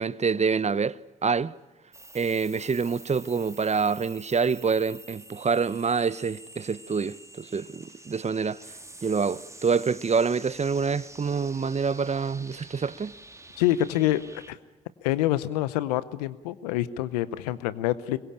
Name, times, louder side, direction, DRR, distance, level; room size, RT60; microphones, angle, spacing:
voice 1, 0.0-1.5 2.1-8.6 9.0-13.1, right 5 dB, 35° right, 0.8 m, -26 dB
sound 1, 1.9-14.5, right 2 dB, 15° right, 1.7 m, -48 dB
voice 2, 13.6-14.6 15.0-18.2, left 14 dB, 90° left, 0.8 m, -26 dB
24.5 x 22.0 x 8.7 m
hypercardioid pair, 40°, 20 cm